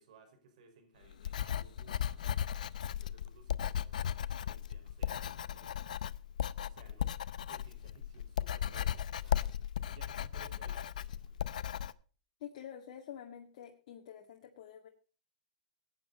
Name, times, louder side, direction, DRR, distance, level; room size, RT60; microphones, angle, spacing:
voice 1, 0.0-5.9 6.6-11.4, right 5 dB, 70° right, 7 dB, 5.5 m, -61 dB
Writing, 1.1-11.9, left 10 dB, 80° left, 0.6 m, -36 dB
voice 2, 12.4-14.9, left 9 dB, 65° left, 2 dB, 2.0 m, -48 dB
18.0 x 9.7 x 4.3 m, 0.38 s
hypercardioid pair, 125°, 4 cm